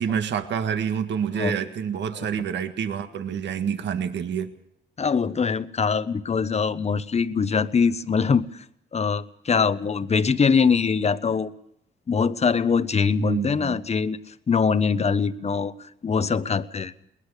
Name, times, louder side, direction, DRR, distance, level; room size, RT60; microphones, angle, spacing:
voice 1, 0.0-4.5 13.2-13.8, right 7 dB, 65° right, 8 dB, 1.8 m, -27 dB
voice 2, 5.0-8.6 8.9-11.5 12.1-14.2 14.5-15.7 16.0-16.9, left 5 dB, 35° left, 13 dB, 1.1 m, -23 dB
20.5 x 20.5 x 6.6 m, 0.73 s
cardioid pair, 90°, 20 cm